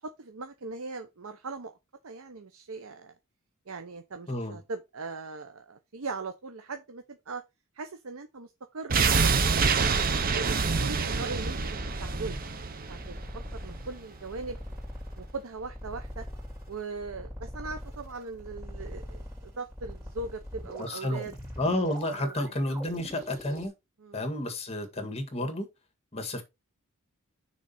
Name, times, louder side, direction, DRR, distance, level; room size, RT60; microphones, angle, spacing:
voice 1, 0.0-1.7 2.0-3.1 3.7-7.4 7.7-9.9 10.3-13.2 13.5-14.6 15.2-16.2 16.7-21.3 22.2-22.3 24.0-24.3, right 3 dB, 70° right, 0.8 m, -40 dB
voice 2, 4.3-4.6 20.8-21.2 21.6-23.7 24.1-25.7 26.1-26.4, left 1 dB, 30° left, 1.8 m, -31 dB
sound 1, 8.9-13.9 14.2-14.3, right 5 dB, 40° right, 0.8 m, -26 dB
sound 2, 9.4-23.7, equal, 15° right, 3.1 m, -42 dB
6.1 x 3.9 x 5.6 m
head